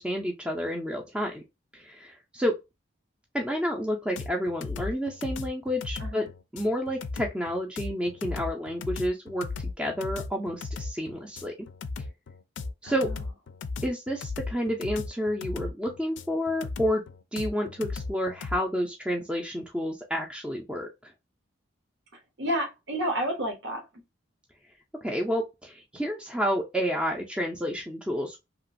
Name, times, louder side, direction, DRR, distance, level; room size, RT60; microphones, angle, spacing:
voice 1, 0.0-1.4 1.7-2.6 3.3-6.3 6.5-11.5 12.8-13.1 13.8-17.0 17.3-21.1 25.0-28.4, equal, 5° right, 0.4 m, -30 dB
sound 1, 4.2-18.6, left 3 dB, 75° left, 0.4 m, -36 dB
voice 2, 12.8-13.1 22.4-23.8, equal, 65° right, 0.9 m, -30 dB
2.9 x 2.4 x 2.5 m
head